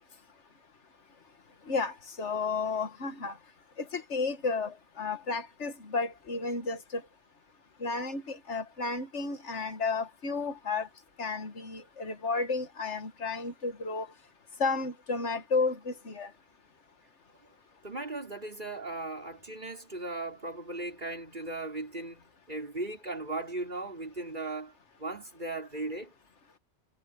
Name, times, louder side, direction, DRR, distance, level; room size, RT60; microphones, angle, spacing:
voice 1, 1.7-3.4 3.8-7.0 7.8-10.9 11.2-14.1 14.6-16.3, left 4 dB, 80° left, 1.9 m, -32 dB
voice 2, 17.8-26.1, right 2 dB, 40° right, 5.5 m, -38 dB
omnidirectional pair, 1.2 m